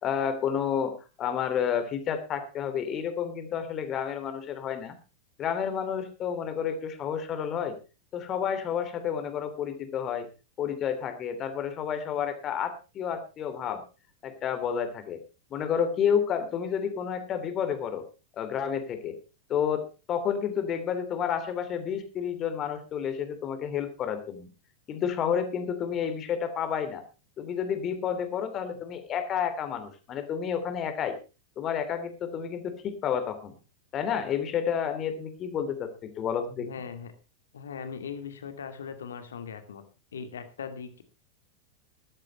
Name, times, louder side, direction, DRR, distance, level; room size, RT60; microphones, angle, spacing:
voice 1, 0.0-5.0 5.4-7.7 8.1-10.3 10.6-13.8 14.2-15.2 15.5-18.0 18.4-19.2 19.5-19.8 20.1-24.5 24.9-27.0 27.4-31.2 31.6-33.5 33.9-36.7, left 8 dB, 30° left, 9 dB, 2.9 m, -30 dB
voice 2, 36.6-37.1 37.5-39.8 40.1-41.0, left 6 dB, 65° left, 8 dB, 2.3 m, -39 dB
14.5 x 12.5 x 4.3 m, 0.32 s
figure-of-eight pair, 90°, 0 cm